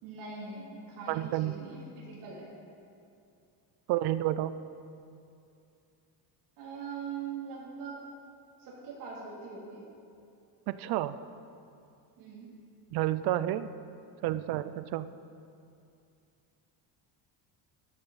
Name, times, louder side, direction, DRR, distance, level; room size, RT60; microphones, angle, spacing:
voice 1, 0.0-2.5 6.6-8.0 8.6-9.8 12.2-12.5, right 5 dB, 75° right, -5 dB, 3.0 m, -42 dB
voice 2, 1.1-1.5 3.9-4.5 10.7-11.2 12.9-13.7 14.2-15.1, right 14 dB, 55° right, 14 dB, 0.5 m, -30 dB
13.0 x 12.0 x 4.1 m, 2.6 s
cardioid pair, 170°, 46 cm